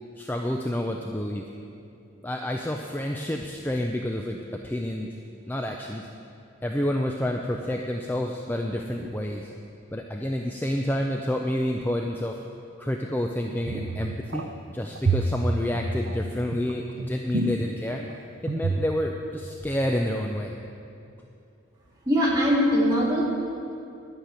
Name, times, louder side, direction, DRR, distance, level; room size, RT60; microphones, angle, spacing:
voice 1, 0.2-1.4 2.2-5.2 5.5-6.1 6.6-9.5 9.9-12.4 12.8-18.0 18.4-20.5, left 1 dB, 10° left, 2 dB, 0.4 m, -29 dB
sound 1, 13.6-14.5 15.0-18.1 18.5-19.0 19.3-19.4, right 3 dB, 55° right, 0.6 m, -28 dB
voice 2, 22.1-23.2, equal, 20° right, -5 dB, 2.4 m, -21 dB
11.5 x 6.6 x 9.1 m, 2.6 s
head